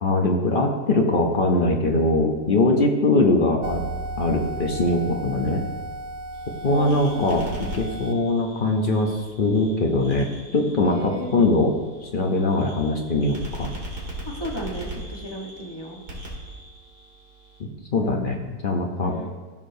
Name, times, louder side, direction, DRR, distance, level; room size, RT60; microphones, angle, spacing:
voice 1, 0.0-3.8 4.2-5.6 6.6-7.5 7.7-9.1 9.4-10.3 10.5-11.7 12.0-13.7 17.9-19.2, left 2 dB, 60° left, 1 dB, 0.5 m, -21 dB
sound 1, 3.6-8.1, right 2 dB, 85° right, 0.6 m, -34 dB
sound 2, 6.3-17.6, right 1 dB, 65° right, 2.7 m, -39 dB
voice 2, 6.6-7.5 10.8-11.4 14.3-16.0 19.0-19.3, equal, 15° left, -2 dB, 1.1 m, -34 dB
14.5 x 6.5 x 2.7 m, 1.4 s
omnidirectional pair, 1.9 m